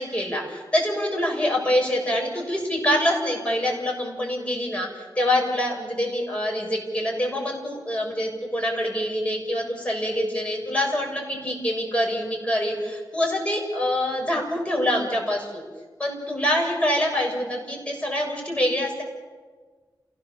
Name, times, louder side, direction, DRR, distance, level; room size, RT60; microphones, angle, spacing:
voice 1, 0.0-15.6 16.0-19.0, left 1 dB, 15° left, -1 dB, 7.0 m, -25 dB
29.0 x 17.0 x 7.4 m, 1.4 s
wide cardioid pair, 90°, 8 cm